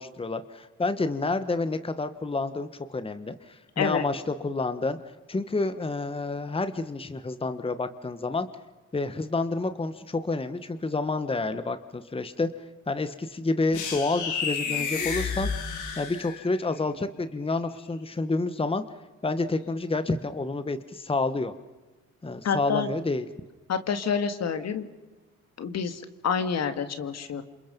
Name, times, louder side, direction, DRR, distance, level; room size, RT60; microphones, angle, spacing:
voice 1, 0.0-5.0 5.3-8.5 8.9-12.5 12.9-15.5 16.0-18.8 19.2-21.5 22.2-23.2, left 3 dB, 20° left, 10 dB, 1.3 m, -29 dB
sound 1, 13.7-16.6, left 5 dB, 80° left, 4.0 m, -31 dB
voice 2, 22.4-22.9 23.7-24.9 25.6-27.4, left 6 dB, 60° left, 9 dB, 2.2 m, -28 dB
28.5 x 27.0 x 5.4 m, 1.2 s
cardioid pair, 90°, 30 cm